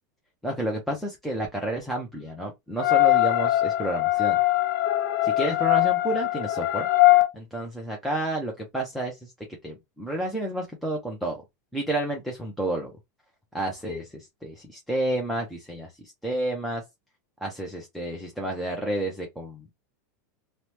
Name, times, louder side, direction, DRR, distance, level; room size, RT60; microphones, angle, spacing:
voice 1, 0.4-4.4 5.2-6.9 7.3-9.3 9.6-11.4 11.7-12.9 13.5-15.9 16.2-16.8 17.4-19.7, right 1 dB, ahead, 0.4 m, -30 dB
sound 1, 2.8-7.3, left 17 dB, 85° left, 0.4 m, -21 dB
2.9 x 2.0 x 3.1 m
supercardioid pair, 165°, 10 cm